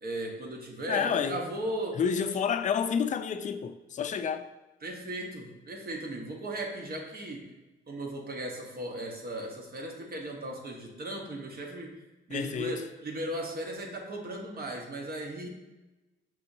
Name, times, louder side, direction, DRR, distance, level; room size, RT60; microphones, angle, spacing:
voice 1, 0.0-2.4 4.8-7.5 7.9-12.0 12.3-15.5, right 1 dB, 50° right, 1.0 m, -37 dB
voice 2, 0.9-1.4 2.0-4.5 12.3-12.8, left 7 dB, 40° left, 0.4 m, -29 dB
6.1 x 2.8 x 2.7 m
cardioid pair, 90°, 20 cm